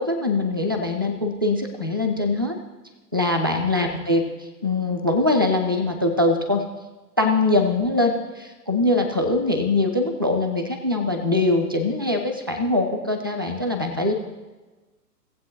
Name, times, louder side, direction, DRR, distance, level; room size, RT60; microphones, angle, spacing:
voice 1, 0.0-2.6 3.1-6.6 7.2-14.1, left 2 dB, 15° right, 4 dB, 0.3 m, -22 dB
18.5 x 7.6 x 2.9 m, 1.2 s
figure-of-eight pair, 115°, 49 cm